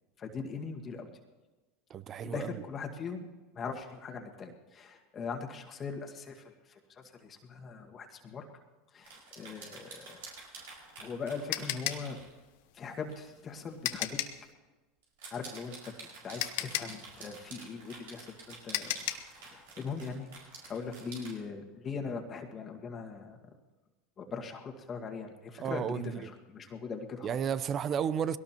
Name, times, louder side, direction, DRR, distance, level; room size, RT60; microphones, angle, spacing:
voice 1, 0.2-1.1 2.2-3.3 3.5-8.5 8.9-10.2 11.0-12.2 12.7-14.2 15.3-15.9 16.2-19.1 19.3-20.3 20.7-23.4 24.2-27.5, left 5 dB, 35° left, 1.8 m, -40 dB
voice 2, 1.9-2.5 25.6-26.3 27.2-28.4, right 8 dB, 40° right, 0.6 m, -32 dB
sound 1, 9.0-12.3 13.1-13.3 13.7-13.8 15.0-21.3, right 4 dB, 80° right, 5.5 m, -49 dB
sound 2, 10.6-14.5 15.9-16.0 16.4-19.4, left 14 dB, 70° left, 0.9 m, -36 dB
21.0 x 17.5 x 3.0 m
hypercardioid pair, 100°, 0 cm